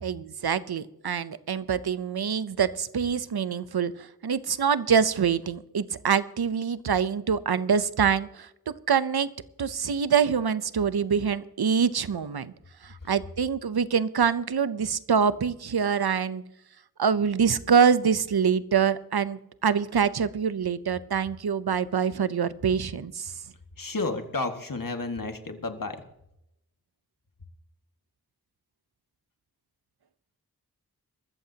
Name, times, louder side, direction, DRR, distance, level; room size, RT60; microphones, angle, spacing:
voice 1, 0.0-3.9 4.2-9.3 9.6-12.5 12.8-16.4 17.0-23.3, right 7 dB, 85° right, 15 dB, 0.7 m, -25 dB
voice 2, 23.8-26.0, left 3 dB, 60° left, 5 dB, 1.9 m, -31 dB
21.5 x 14.0 x 2.9 m, 0.81 s
wide cardioid pair, 60°, 37 cm